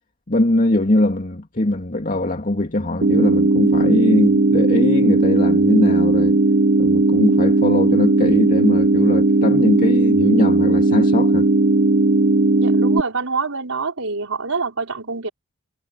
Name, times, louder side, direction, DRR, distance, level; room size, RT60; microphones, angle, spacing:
voice 1, 0.3-6.4 6.8-11.5, left 1 dB, 40° left, 2.3 m, -21 dB
sound 1, 3.0-13.0, right 2 dB, 50° right, 1.5 m, -16 dB
voice 2, 12.6-15.3, right 4 dB, 85° right, 4.5 m, -26 dB
head